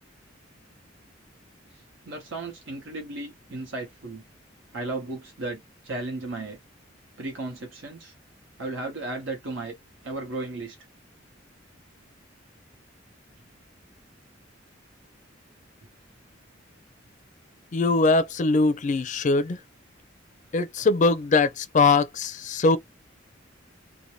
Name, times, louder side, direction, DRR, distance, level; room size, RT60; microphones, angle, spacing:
voice 1, 1.7-4.2 4.7-6.6 7.2-8.1 8.6-9.8 10.0-10.8, right 2 dB, 85° right, 1.0 m, -35 dB
voice 2, 17.7-19.6 20.5-22.8, left 3 dB, 40° left, 0.4 m, -21 dB
2.6 x 2.1 x 2.9 m
head